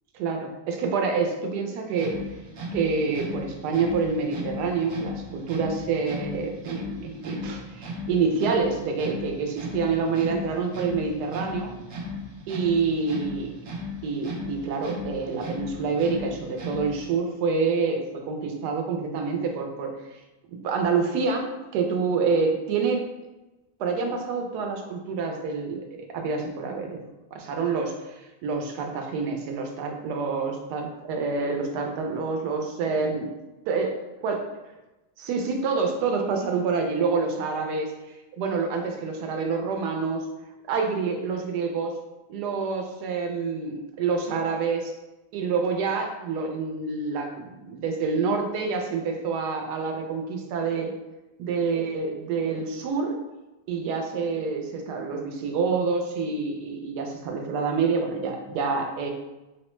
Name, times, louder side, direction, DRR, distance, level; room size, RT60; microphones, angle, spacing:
voice 1, 0.1-2.2 2.7-11.7 12.5-13.6 14.0-20.0 20.6-23.0 23.8-27.0 27.3-33.3 33.7-33.9 34.2-34.4 35.2-37.9 38.3-40.3 40.7-42.0 42.3-44.9 45.3-50.9 51.4-53.2 53.7-59.1, right 4 dB, 85° right, 3 dB, 1.2 m, -27 dB
sound 1, 1.9-17.1, left 2 dB, 60° right, 0.8 m, -36 dB
4.8 x 2.1 x 3.0 m, 1.0 s
omnidirectional pair, 1.7 m